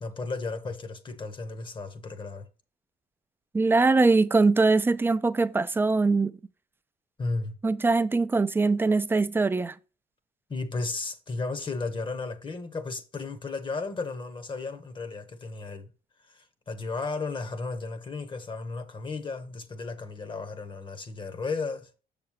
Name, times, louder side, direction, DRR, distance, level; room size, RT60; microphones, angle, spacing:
voice 1, 0.0-2.5 7.2-7.5 10.5-15.9 16.3-22.0, left 3 dB, 30° left, 1.2 m, -34 dB
voice 2, 3.5-6.3 7.6-9.7, right 3 dB, 15° right, 0.5 m, -22 dB
6.9 x 6.6 x 3.0 m
cardioid pair, 100°, 16 cm